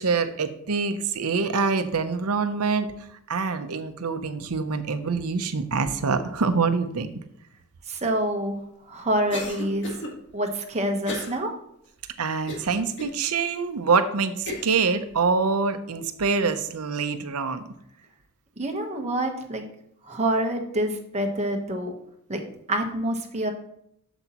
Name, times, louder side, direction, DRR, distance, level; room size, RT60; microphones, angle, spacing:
voice 1, 0.0-2.9 3.3-7.1 12.2-17.6, right 4 dB, 80° right, 10 dB, 0.7 m, -25 dB
voice 2, 7.9-8.6 8.9-10.0 10.3-11.5 18.6-19.6 20.0-21.9 22.3-22.4 22.7-23.5, right 1 dB, 30° right, 3 dB, 1.1 m, -27 dB
Cough, 9.3-10.1 11.0-11.4 11.8-11.9 12.5-13.1 13.7-13.8 14.5-14.8, left 1 dB, 55° left, 1.5 m, -33 dB
7.9 x 7.1 x 3.0 m, 0.75 s
head